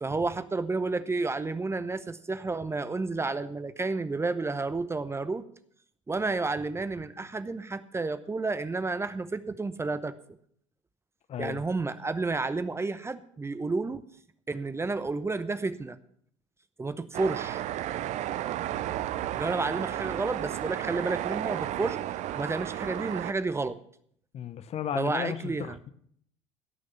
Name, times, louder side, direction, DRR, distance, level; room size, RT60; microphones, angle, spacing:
voice 1, 0.0-5.4 6.1-10.1 11.4-14.0 14.5-16.0 16.8-17.6 19.3-22.0 22.3-23.8 24.9-25.8, right 3 dB, 15° right, 13 dB, 0.8 m, -31 dB
voice 2, 11.3-11.6 24.3-25.9, left 9 dB, 40° left, 14 dB, 0.8 m, -34 dB
sound 1, 17.1-23.3, right 12 dB, 45° right, 0.6 m, -33 dB
17.0 x 6.4 x 7.1 m, 0.65 s
figure-of-eight pair, 65°, 17 cm